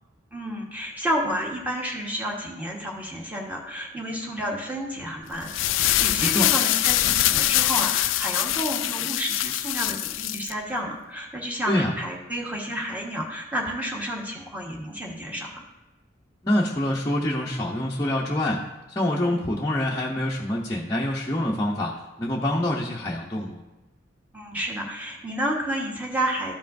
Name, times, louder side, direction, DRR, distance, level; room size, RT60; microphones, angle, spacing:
voice 1, 0.3-5.5 5.8-15.6 24.3-26.6, equal, 10° right, -2 dB, 1.2 m, -30 dB
sound 1, 5.3-10.5, left 14 dB, 80° left, 0.3 m, -23 dB
voice 2, 16.4-18.6 19.0-21.9 22.2-23.6, left 1 dB, 20° left, -4 dB, 0.6 m, -25 dB
13.0 x 5.4 x 2.6 m, 1.1 s
head